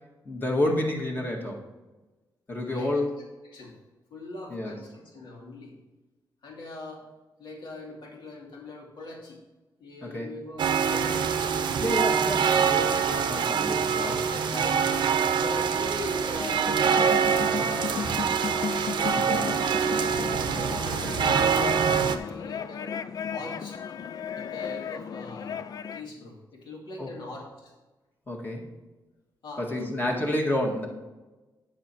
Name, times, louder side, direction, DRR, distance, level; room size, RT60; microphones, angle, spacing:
voice 1, 0.2-1.6 2.5-3.1 4.5-4.7 10.0-10.3 11.8-14.1 19.1-19.5 27.0-27.1 28.3-28.7 29.6-30.9, left 1 dB, 25° left, 0 dB, 1.7 m, -29 dB
voice 2, 2.6-3.1 3.4-3.8 4.1-5.8 6.4-7.1 7.4-9.4 9.8-11.8 12.7-12.9 13.9-15.0 15.3-18.5 19.9-22.9 23.3-23.8 24.4-25.6 25.9-27.7 29.4-30.2, left 2 dB, 75° left, -2 dB, 2.5 m, -41 dB
sound 1, 10.6-22.2, right 7 dB, 80° right, 0.7 m, -25 dB
sound 2, 16.2-26.1, left 7 dB, 55° left, 0.4 m, -35 dB
9.4 x 7.1 x 4.3 m, 1.2 s
wide cardioid pair, 125°, 8 cm